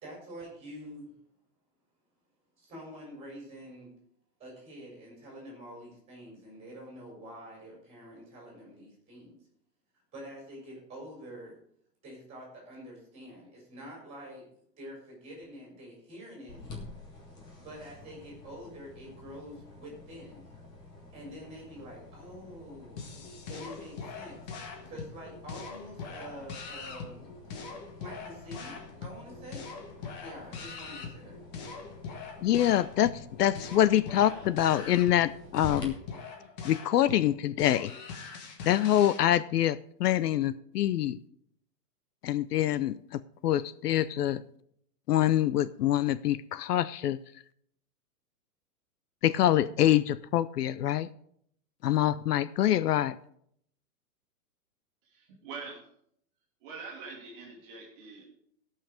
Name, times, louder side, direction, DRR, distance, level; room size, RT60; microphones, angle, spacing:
voice 1, 0.0-1.1 2.6-3.9 4.4-9.3 10.1-11.5 12.0-14.5 14.8-16.6 17.6-20.5 21.1-23.0 23.5-24.4 24.8-27.3 27.9-29.6 30.2-31.4, equal, 10° right, 4.6 m, -46 dB
sound 1, 16.5-35.8, left 3 dB, 10° left, 0.8 m, -49 dB
sound 2, 23.0-39.2, left 5 dB, 25° left, 1.1 m, -43 dB
voice 2, 32.4-35.9 36.6-37.9 38.6-41.2 42.2-44.4 45.1-47.2 49.2-51.1 51.8-53.2, left 12 dB, 70° left, 0.6 m, -25 dB
voice 3, 34.1-34.5 36.4-36.5 55.1-55.9 56.6-58.3, right 4 dB, 30° right, 2.0 m, -44 dB
15.5 x 5.8 x 5.0 m
hypercardioid pair, 165°, 49 cm